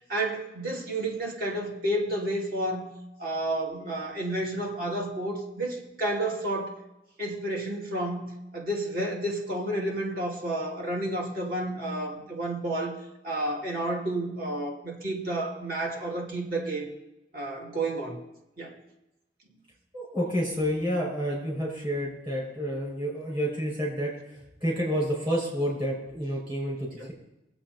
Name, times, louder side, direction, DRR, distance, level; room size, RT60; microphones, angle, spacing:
voice 1, 0.1-2.9 3.2-6.8 7.2-8.3 8.5-13.0 13.2-16.9 17.3-18.2 18.6-18.7 27.0-27.1, right 1 dB, 55° right, -1 dB, 2.5 m, -31 dB
voice 2, 19.9-24.1 24.6-27.1, equal, 30° right, -4 dB, 5.9 m, -29 dB
22.0 x 8.2 x 4.2 m, 0.91 s
head